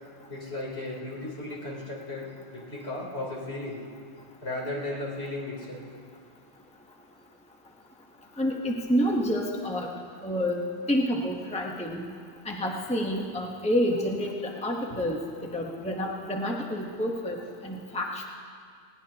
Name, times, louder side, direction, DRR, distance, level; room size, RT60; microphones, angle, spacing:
voice 1, 0.3-3.8 4.4-5.8, left 2 dB, 60° left, -5 dB, 4.0 m, -35 dB
voice 2, 8.4-9.9 10.2-10.6 10.9-12.0 12.5-14.3 14.6-15.2 15.5-17.4 17.6-18.3, equal, 5° left, 0 dB, 1.1 m, -28 dB
21.0 x 18.5 x 2.9 m, 2.1 s
omnidirectional pair, 1.2 m